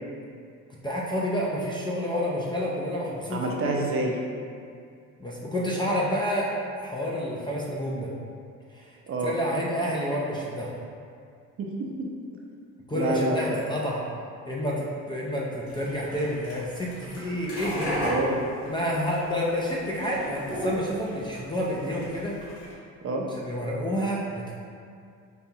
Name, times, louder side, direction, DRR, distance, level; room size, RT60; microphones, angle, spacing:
voice 1, 0.8-3.8 5.2-6.5 6.8-8.1 8.7-10.7 12.9-14.0 14.5-17.9 18.7-22.4 23.4-24.5, equal, 15° left, -5 dB, 0.4 m, -29 dB
voice 2, 3.3-4.2 9.1-9.3 11.6-12.1 12.9-13.6 18.0-18.4 23.0-23.3, right 2 dB, 40° right, -1 dB, 0.5 m, -27 dB
sound 1, 15.7-22.7, equal, 45° left, 1.5 m, -34 dB
5.3 x 2.3 x 2.7 m, 2.3 s
cardioid pair, 130°, 32 cm